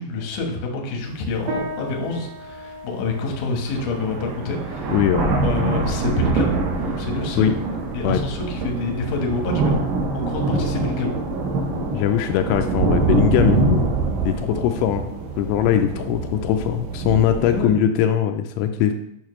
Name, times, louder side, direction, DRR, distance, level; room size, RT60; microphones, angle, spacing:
voice 1, 0.0-4.9 5.4-6.6 7.0-7.5 7.9-9.8 10.1-11.1 17.5-17.7, left 3 dB, 70° left, 1 dB, 2.2 m, -27 dB
sound 1, 1.1-1.2 1.9-2.0 3.2-3.3 3.7-17.7, right 3 dB, 85° right, 1.9 m, -24 dB
sound 2, 1.5-11.1, equal, 55° right, 2.9 m, -39 dB
voice 2, 4.9-5.4 7.4-7.5 8.0-8.2 11.9-13.9 14.2-15.1 15.4-18.9, left 10 dB, 85° left, 6 dB, 2.9 m, -21 dB
8.8 x 6.4 x 3.1 m, 0.80 s
omnidirectional pair, 5.5 m